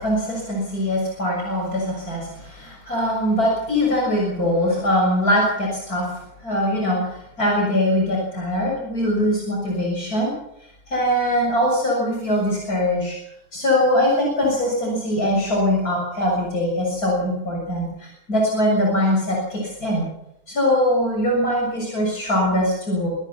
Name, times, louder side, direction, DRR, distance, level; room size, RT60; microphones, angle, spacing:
voice 1, 0.0-6.1 6.4-10.3 10.9-13.2 13.5-20.0 20.5-23.1, left 1 dB, 80° left, -2 dB, 7.4 m, -22 dB
25.5 x 18.0 x 6.0 m, 0.80 s
omnidirectional pair, 1.6 m